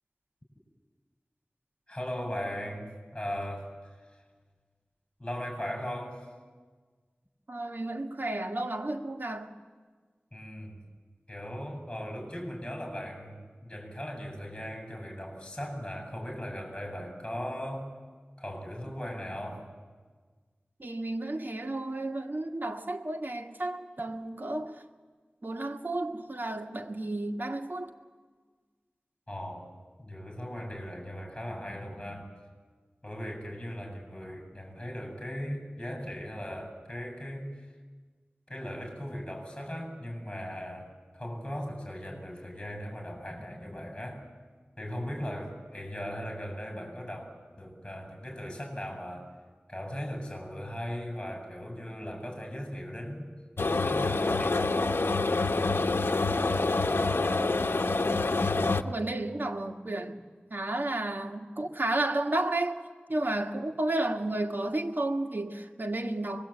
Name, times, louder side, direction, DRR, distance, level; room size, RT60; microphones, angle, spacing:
voice 1, 1.9-3.7 5.2-6.3 10.3-10.8 11.3-17.9 18.4-19.7 29.3-29.7 30.0-32.3 33.0-37.5 38.5-44.2 44.8-49.3 49.7-53.3 53.8-55.0, equal, 20° left, 7.6 m, -38 dB
voice 2, 7.5-9.5 20.8-24.8 25.4-28.0 57.4-57.5 58.8-60.2 60.5-62.8 63.1-66.4, right 2 dB, 60° right, 1.9 m, -32 dB
sound 1, 53.6-58.8, left 3 dB, 80° left, 0.8 m, -26 dB
25.5 x 21.0 x 8.8 m
wide cardioid pair, 45°, 4 cm